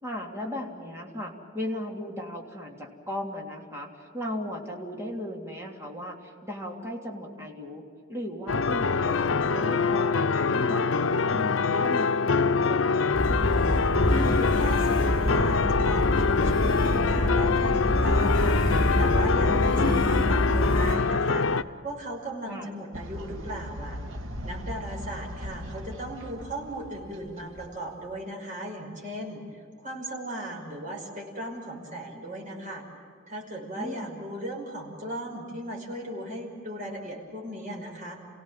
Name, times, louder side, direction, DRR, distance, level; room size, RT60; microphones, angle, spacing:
voice 1, 0.0-7.8 8.1-13.5 22.5-22.7 33.7-34.2, left 1 dB, 15° right, -1 dB, 3.3 m, -37 dB
sound 1, 8.5-21.6, left 4 dB, 90° left, 0.7 m, -24 dB
sound 2, 13.1-21.0, equal, 25° left, 4.7 m, -26 dB
voice 2, 14.1-21.5 21.8-24.0 24.4-32.9 33.3-38.2, right 1 dB, 40° right, -1 dB, 5.7 m, -37 dB
Fowl, 22.9-28.2, equal, 90° right, 1.6 m, -39 dB
29.5 x 17.0 x 7.7 m, 2.3 s
head